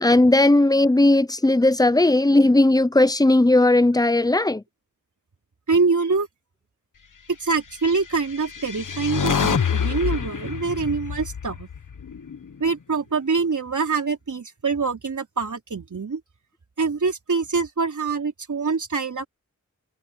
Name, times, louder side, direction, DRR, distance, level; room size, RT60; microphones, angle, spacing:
voice 1, 0.0-4.6, left 2 dB, 10° left, 0.7 m, -17 dB
voice 2, 5.7-6.3 7.4-11.7 12.6-16.2 16.8-19.3, right 4 dB, 70° right, 3.8 m, -25 dB
sound 1, 8.2-12.5, left 7 dB, 75° left, 1.3 m, -26 dB
wide cardioid pair, 90°, 31 cm